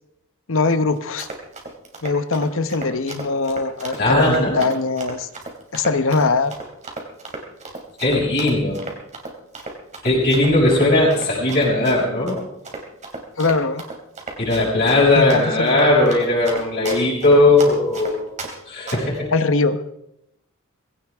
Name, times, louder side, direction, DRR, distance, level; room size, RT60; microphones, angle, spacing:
voice 1, 0.5-1.3 2.0-5.3 5.7-6.5 13.4-13.8 15.1-15.8 19.3-19.8, left 3 dB, 65° left, 11 dB, 1.0 m, -21 dB
Run, 1.0-18.5 18.9-19.2, right 3 dB, 35° right, 3.1 m, -34 dB
voice 2, 4.0-4.6 8.0-8.8 10.0-12.4 14.4-18.3 18.6-19.3, left 2 dB, 50° left, -9 dB, 6.4 m, -18 dB
20.0 x 17.0 x 3.6 m, 0.83 s
head